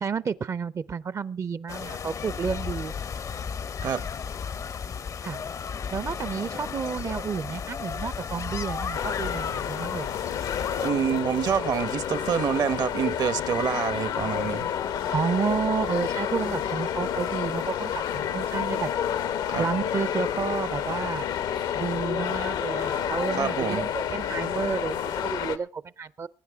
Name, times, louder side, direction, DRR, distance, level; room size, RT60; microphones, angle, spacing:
voice 1, 0.0-2.9 5.2-5.4 5.9-10.1 15.1-18.9 19.6-21.3 21.7-26.3, right 6 dB, 45° right, 0.5 m, -31 dB
sound 1, 1.7-10.9, left 6 dB, 50° left, 0.6 m, -34 dB
sound 2, 8.9-25.6, left 9 dB, 85° left, 0.9 m, -29 dB
voice 2, 10.8-14.7 19.5-19.7 23.3-23.8, right 7 dB, 65° right, 1.0 m, -27 dB
22.0 x 9.6 x 3.5 m
cardioid pair, 80°, 7 cm